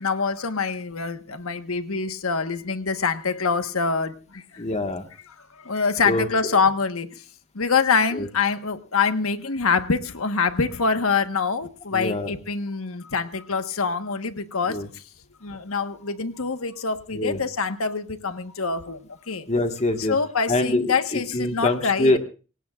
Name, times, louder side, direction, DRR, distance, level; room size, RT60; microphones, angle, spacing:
voice 1, 0.0-4.1 5.7-7.1 7.6-14.8 15.4-19.0 19.3-19.4 20.1-22.2, left 5 dB, 90° left, 9 dB, 1.3 m, -25 dB
voice 2, 4.6-5.1 6.0-6.6 8.1-8.3 11.9-12.3 14.7-14.9 17.1-17.4 19.5-20.2 20.5-22.2, left 2 dB, 35° left, 6 dB, 1.5 m, -24 dB
26.5 x 17.5 x 2.4 m, 0.35 s
head